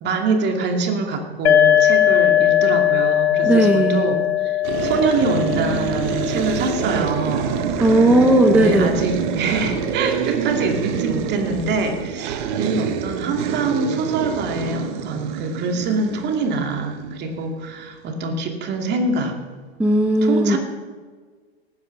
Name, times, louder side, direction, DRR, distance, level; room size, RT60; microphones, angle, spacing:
voice 1, 0.0-7.6 8.5-19.4 20.2-20.6, right 4 dB, 30° right, 3 dB, 2.4 m, -24 dB
sound 1, 1.5-8.9, left 11 dB, 85° left, 0.7 m, -20 dB
voice 2, 3.4-4.0 7.8-8.9 19.8-20.6, right 1 dB, 5° right, 3 dB, 1.0 m, -16 dB
sound 2, 4.6-17.5, right 7 dB, 50° right, 1.3 m, -26 dB
18.0 x 9.7 x 6.0 m, 1.5 s
hypercardioid pair, 110°, 32 cm